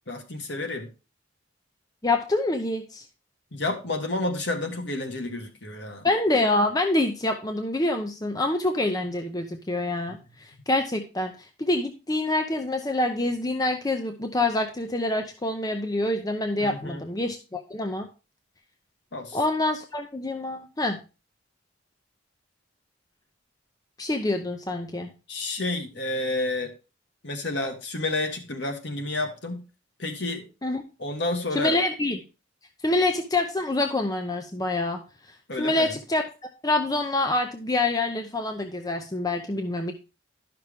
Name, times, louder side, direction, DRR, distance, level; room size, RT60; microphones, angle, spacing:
voice 1, 0.1-0.9 3.5-6.1 10.1-10.4 16.6-17.0 19.1-19.4 25.3-26.7 27.2-29.6 30.0-30.5 31.0-31.8 35.5-36.0, left 2 dB, 60° left, 5 dB, 1.5 m, -30 dB
voice 2, 2.0-3.0 6.0-11.3 11.6-18.1 19.3-21.0 24.0-25.1 30.6-30.8 31.6-32.2 32.8-35.0 35.6-36.2 36.6-39.9, left 2 dB, 20° left, 5 dB, 0.6 m, -26 dB
11.5 x 5.9 x 3.5 m, 0.32 s
head